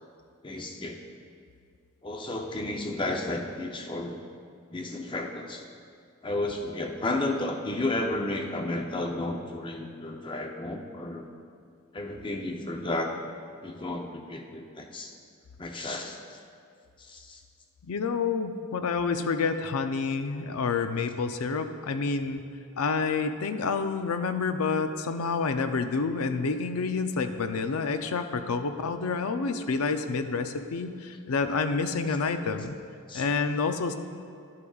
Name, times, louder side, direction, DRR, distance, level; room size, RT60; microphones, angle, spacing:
voice 1, 0.4-1.0 2.0-4.2 4.7-5.6 6.2-11.2 11.9-13.1 13.6-15.1 15.6-16.4 17.0-17.4 33.1-33.3, left 2 dB, 20° left, 3 dB, 0.5 m, -32 dB
voice 2, 17.9-22.4 22.8-32.7 33.1-33.9, left 4 dB, 80° left, 9 dB, 0.5 m, -28 dB
11.5 x 8.4 x 2.3 m, 2.3 s
head